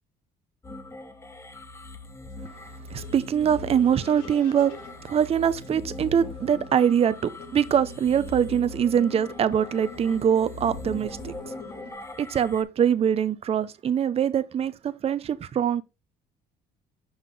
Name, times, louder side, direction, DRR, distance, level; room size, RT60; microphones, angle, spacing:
sound 1, 0.6-12.6, left 2 dB, 15° left, 1.0 m, -40 dB
sound 2, 2.3-11.9, left 5 dB, 85° left, 2.9 m, -47 dB
voice 1, 2.9-4.7 5.0-11.5 12.2-15.8, right 8 dB, 35° right, 0.6 m, -23 dB
5.8 x 5.5 x 3.4 m
cardioid pair, 110°, 17 cm